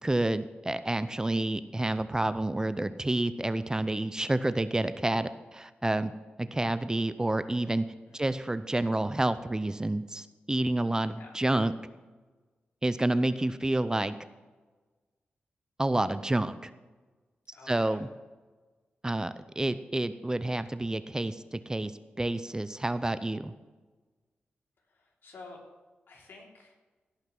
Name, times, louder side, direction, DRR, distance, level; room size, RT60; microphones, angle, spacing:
voice 1, 0.0-6.1 6.4-7.9 8.1-11.7 12.8-14.2 15.8-16.7 17.7-18.1 19.0-21.9 22.2-23.5, right 1 dB, 20° right, 13 dB, 0.6 m, -29 dB
voice 2, 17.5-18.0 24.9-25.6 26.1-26.7, left 3 dB, 75° left, -1 dB, 3.1 m, -50 dB
16.5 x 5.8 x 6.0 m, 1.3 s
cardioid pair, 65°, 4 cm